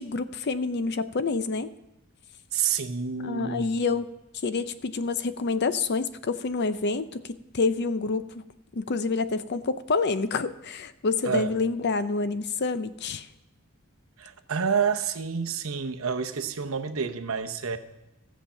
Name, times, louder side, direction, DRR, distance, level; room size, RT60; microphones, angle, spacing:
voice 1, 0.0-1.7 3.2-4.1 4.4-8.4 8.7-13.3, left 4 dB, 50° left, 12 dB, 0.6 m, -28 dB
voice 2, 2.5-3.8 11.2-11.5 14.2-17.8, right 6 dB, 70° right, 7 dB, 0.9 m, -28 dB
15.5 x 7.3 x 5.6 m, 0.91 s
head